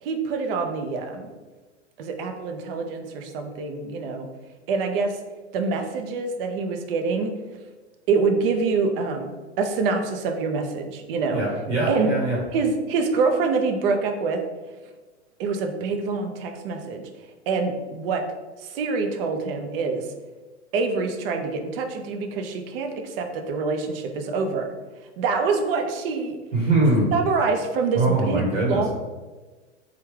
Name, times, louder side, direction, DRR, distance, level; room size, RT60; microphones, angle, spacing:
voice 1, 0.0-1.3 2.0-4.3 4.7-5.2 5.5-7.4 8.1-9.3 9.6-11.4 11.9-12.1 12.5-14.4 15.4-18.2 18.6-20.1 20.7-24.7 25.0-26.4 27.1-28.9, right 4 dB, 55° right, 5 dB, 0.6 m, -25 dB
voice 2, 11.3-12.4 26.5-27.1 27.9-28.8, right 2 dB, 80° right, -5 dB, 1.0 m, -22 dB
3.3 x 2.3 x 3.2 m, 1.3 s
hypercardioid pair, 110°, 35 cm